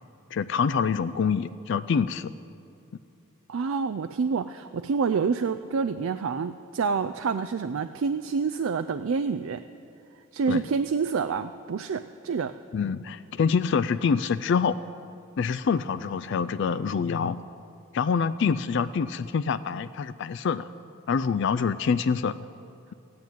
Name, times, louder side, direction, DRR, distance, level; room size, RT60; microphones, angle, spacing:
voice 1, 0.3-2.3 10.5-10.6 12.7-14.8 15.4-17.4 17.9-20.7 21.1-22.4, left 6 dB, 60° left, 13 dB, 0.3 m, -26 dB
voice 2, 3.5-9.6 10.3-12.5, right 5 dB, 80° right, 10 dB, 0.4 m, -27 dB
14.5 x 9.5 x 9.1 m, 2.6 s
head